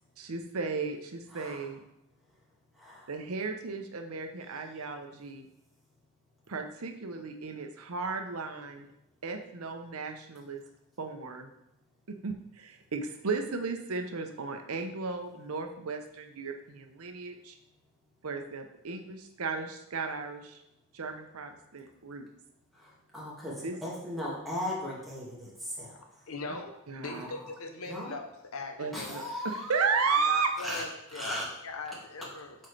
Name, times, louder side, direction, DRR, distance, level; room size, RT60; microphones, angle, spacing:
voice 1, 0.2-1.8 3.1-5.5 6.5-8.9 9.2-10.6 11.0-11.5 12.1-17.6 18.2-20.6 20.9-22.3 23.6-23.8 26.5-26.6 26.9-27.3 28.8-30.5, right 4 dB, 90° right, 5 dB, 0.7 m, -34 dB
voice 2, 1.3-1.6 2.7-3.1 22.7-26.3 27.0-27.5 27.9-28.2 28.9-29.8 30.6-30.8 31.1-31.5, left 1 dB, ahead, -7 dB, 2.0 m, -38 dB
voice 3, 26.3-28.3 28.5-29.1 30.0-32.6, left 3 dB, 80° left, 5 dB, 0.9 m, -40 dB
7.8 x 4.3 x 3.3 m, 0.82 s
head